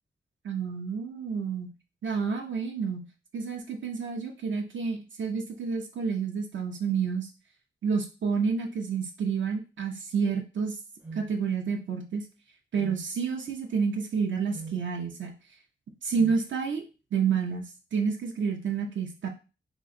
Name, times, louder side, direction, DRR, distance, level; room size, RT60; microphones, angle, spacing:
voice 1, 0.4-1.7 2.0-3.1 3.3-7.3 7.8-10.8 11.1-12.2 12.7-15.3 16.0-16.9 17.1-17.6 17.9-19.3, right 6 dB, 70° right, 3 dB, 0.7 m, -29 dB
sound 1, 11.0-11.3 12.8-13.1 14.5-14.8 16.2-16.5, right 4 dB, 10° right, 0.5 m, -41 dB
3.0 x 2.6 x 3.8 m, 0.31 s
wide cardioid pair, 115°, 20 cm